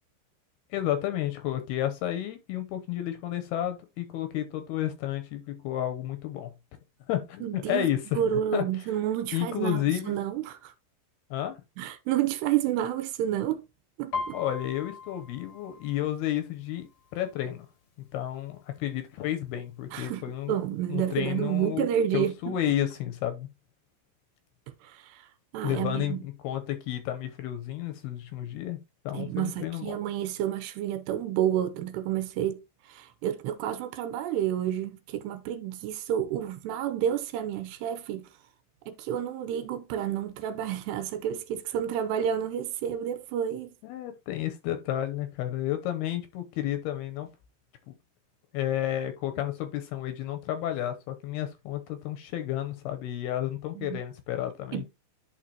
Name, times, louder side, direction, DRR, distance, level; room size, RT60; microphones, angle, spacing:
voice 1, 0.7-6.5 7.1-8.6 9.3-10.2 11.3-11.6 14.3-17.7 18.1-20.5 20.9-21.9 22.1-23.5 25.6-28.8 29.0-30.0 43.8-47.3 47.9-48.0 48.5-54.8, left 12 dB, 75° left, 2.5 m, -31 dB
voice 2, 7.4-7.9 8.1-10.7 11.8-13.6 14.0-14.4 19.9-22.6 24.8-25.3 25.5-26.2 29.1-38.3 38.9-43.7 53.8-54.0 54.7-54.9, right 10 dB, 80° right, 2.7 m, -30 dB
Piano, 14.1-17.8 18.1-18.5 18.9-19.5 20.1-20.2 20.4-21.5 21.8-21.9, left 4 dB, 60° left, 1.4 m, -39 dB
11.5 x 4.7 x 2.8 m
omnidirectional pair, 5.1 m